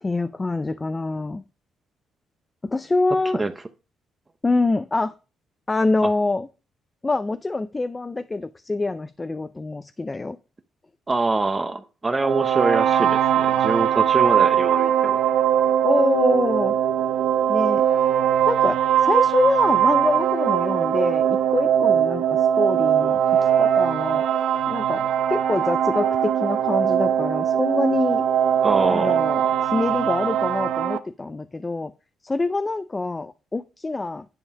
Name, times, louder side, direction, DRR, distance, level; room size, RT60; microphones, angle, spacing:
voice 1, 0.0-1.4 2.6-3.4 4.4-5.1 5.7-6.5 7.0-10.4 15.8-16.7 17.5-17.9 18.5-24.2 24.7-28.2 28.9-31.9 32.2-34.2, left 3 dB, 20° left, 0.5 m, -25 dB
voice 2, 11.1-15.2 28.6-29.2, right 3 dB, 25° right, 0.8 m, -24 dB
sound 1, 12.2-31.0, right 9 dB, 85° right, 0.6 m, -21 dB
10.0 x 5.3 x 4.7 m
cardioid pair, 90°, 0 cm